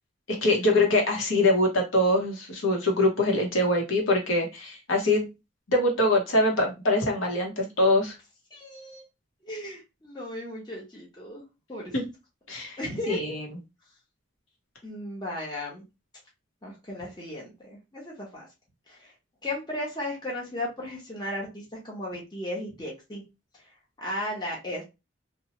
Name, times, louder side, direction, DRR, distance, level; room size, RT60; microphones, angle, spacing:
voice 1, 0.3-5.3 5.7-8.2 11.9-12.0 12.5-12.8 13.1-13.5, left 1 dB, 75° left, 1 dB, 0.9 m, -23 dB
voice 2, 8.5-9.0 9.4-11.4 11.7-11.9 12.8-13.4 14.8-15.8 16.6-18.5 18.9-19.1 19.4-23.2 24.0-24.8, left 1 dB, 20° left, -3 dB, 0.9 m, -35 dB
2.9 x 2.1 x 2.8 m, 0.25 s
head